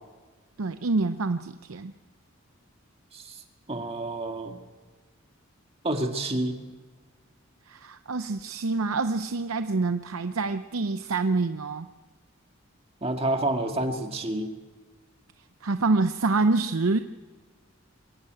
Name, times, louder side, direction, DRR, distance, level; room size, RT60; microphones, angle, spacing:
voice 1, 0.6-1.9 7.7-11.9 15.6-17.0, right 3 dB, 85° right, 10 dB, 0.7 m, -26 dB
voice 2, 3.7-4.6 5.8-6.6 13.0-14.5, right 1 dB, 30° right, 4 dB, 1.8 m, -29 dB
24.0 x 14.0 x 9.1 m, 1.4 s
head